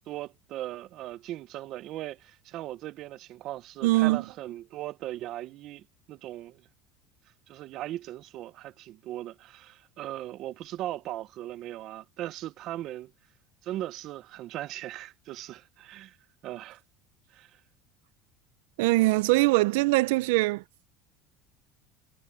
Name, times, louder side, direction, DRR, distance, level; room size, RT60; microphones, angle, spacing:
voice 1, 0.1-6.7 7.5-13.1 13.6-16.2 16.4-16.8 17.3-17.6, right 14 dB, 45° right, 0.6 m, -38 dB
voice 2, 3.8-4.2 18.8-20.6, right 20 dB, 85° right, 0.4 m, -22 dB
cardioid pair, 150°, 0 cm